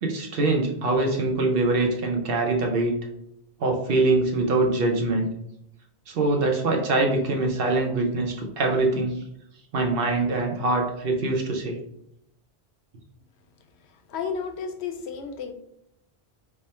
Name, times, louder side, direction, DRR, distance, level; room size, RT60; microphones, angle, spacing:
voice 1, 0.0-2.9 3.6-5.3 6.1-9.2 9.7-11.8, right 2 dB, 65° right, 1 dB, 0.9 m, -23 dB
voice 2, 14.1-15.5, left 6 dB, 85° left, 6 dB, 0.9 m, -32 dB
3.4 x 2.1 x 4.2 m, 0.78 s
omnidirectional pair, 1.1 m